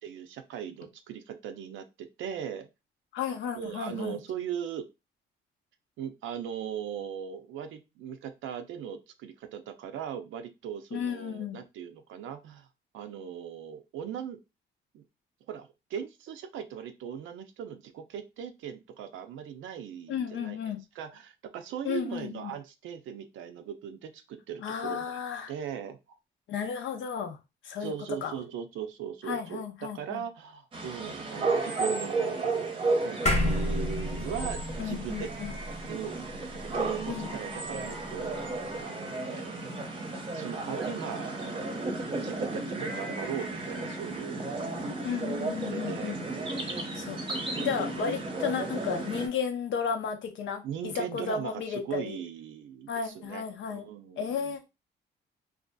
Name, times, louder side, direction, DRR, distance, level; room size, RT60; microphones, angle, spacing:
voice 1, 0.0-2.7 3.6-4.9 6.0-12.7 12.9-14.4 14.9-15.0 15.5-20.6 21.0-25.2 25.5-26.0 27.8-32.6 32.9-35.3 35.9-38.3 38.8-39.8 40.3-41.9 42.2-44.4 45.7-46.7 48.0-48.1 50.6-53.4 53.7-54.5, right 8 dB, 80° right, 0.4 m, -39 dB
voice 2, 3.1-4.2 10.9-11.6 20.1-20.8 21.8-22.5 24.6-25.5 26.5-27.4 27.6-27.9 28.2-28.3 29.3-30.2 34.8-35.6 37.1-37.3 45.0-46.2 46.9-52.2 52.9-53.9 54.2-54.6, left 7 dB, 70° left, 0.6 m, -33 dB
sound 1, 30.7-49.3, right 3 dB, 25° right, 0.7 m, -33 dB
sound 2, 33.3-37.9, left 1 dB, 35° left, 0.7 m, -31 dB
2.6 x 2.4 x 2.2 m
cardioid pair, 90°, 20 cm